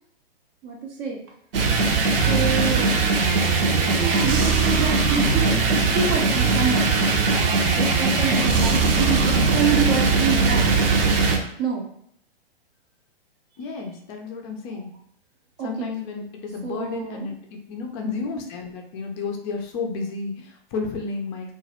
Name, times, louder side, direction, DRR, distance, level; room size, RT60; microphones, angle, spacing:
voice 1, 0.6-1.2 2.3-3.0 4.0-10.7 11.6-11.8 15.6-15.9 16.6-17.3, right 6 dB, 30° right, 0 dB, 0.6 m, -27 dB
sound 1, 1.5-11.4, right 4 dB, 65° right, 0.8 m, -20 dB
voice 2, 13.6-14.9 15.6-21.5, left 4 dB, 25° left, 3 dB, 0.5 m, -32 dB
2.9 x 2.4 x 2.9 m, 0.68 s
hypercardioid pair, 125°, 30 cm